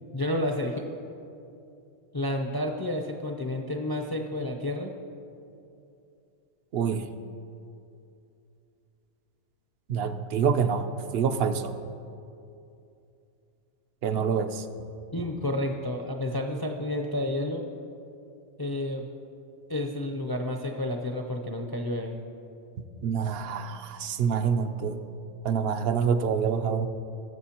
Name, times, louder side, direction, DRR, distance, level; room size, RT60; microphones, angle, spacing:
voice 1, 0.1-0.9 2.1-4.9 15.1-17.6 18.6-19.1 19.7-22.2, left 1 dB, 30° left, 2 dB, 0.5 m, -30 dB
voice 2, 6.7-7.2 9.9-11.8 14.0-14.7 23.0-25.0 25.4-26.9, right 6 dB, 65° right, 9 dB, 0.7 m, -26 dB
19.5 x 7.1 x 2.9 m, 2.7 s
omnidirectional pair, 1.2 m